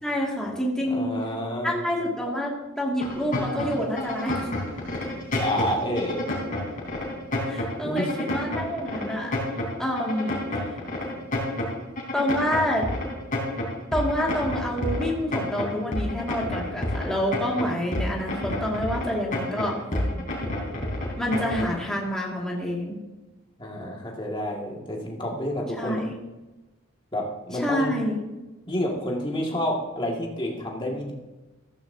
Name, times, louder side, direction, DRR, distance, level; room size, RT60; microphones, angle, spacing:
voice 1, 0.0-1.2 1.6-4.5 7.5-9.4 9.8-10.4 12.1-12.8 13.9-19.8 21.2-23.0 25.8-26.1 27.6-28.2, equal, 5° left, -4 dB, 2.1 m, -27 dB
voice 2, 0.8-1.8 5.3-6.2 7.8-8.1 9.2-9.3 19.3-19.4 23.6-26.0 27.1-27.9 28.7-31.1, equal, 25° left, -1 dB, 2.0 m, -29 dB
sound 1, 3.0-21.8, left 1 dB, 40° left, 3.6 m, -29 dB
14.5 x 13.5 x 2.8 m, 1.1 s
head